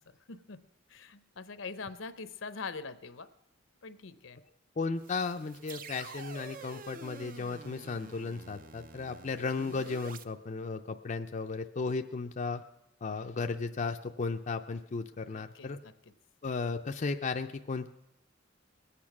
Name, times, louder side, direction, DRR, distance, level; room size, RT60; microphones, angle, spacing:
voice 1, 0.3-0.6 0.9-3.3 3.8-4.4 15.3-15.9, left 4 dB, 75° left, 12 dB, 0.8 m, -43 dB
voice 2, 4.8-12.6 13.0-15.8 16.4-17.9, left 4 dB, 40° left, 5 dB, 0.5 m, -35 dB
sound 1, 5.0-10.2, right 5 dB, 45° right, 0.5 m, -48 dB
21.0 x 8.6 x 5.9 m, 0.83 s
head